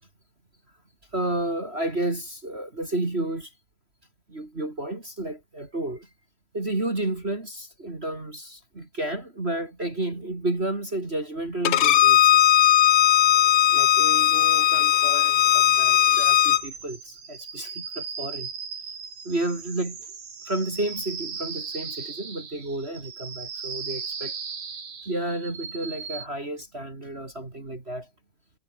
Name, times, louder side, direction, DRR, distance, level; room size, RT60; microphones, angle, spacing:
voice 1, 1.1-3.5 4.3-6.1 6.5-12.4 13.7-18.5 19.2-20.1 20.4-24.3 25.0-28.1, right 1 dB, 20° right, 2.6 m, -31 dB
Bowed string instrument, 11.6-16.6, left 12 dB, 65° left, 1.4 m, -18 dB
sound 1, 15.6-26.3, right 6 dB, 85° right, 5.8 m, -37 dB
omnidirectional pair, 3.6 m